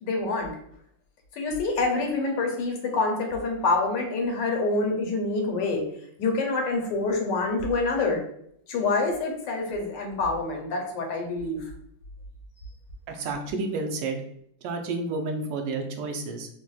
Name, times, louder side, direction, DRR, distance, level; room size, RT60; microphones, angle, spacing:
voice 1, 0.0-0.5 1.4-5.8 6.2-8.2 8.7-11.6 13.1-13.2, left 3 dB, 80° left, 2 dB, 1.3 m, -26 dB
voice 2, 13.1-14.2 14.6-16.5, right 3 dB, 80° right, 4 dB, 1.3 m, -30 dB
3.9 x 2.1 x 2.3 m, 0.71 s
omnidirectional pair, 2.0 m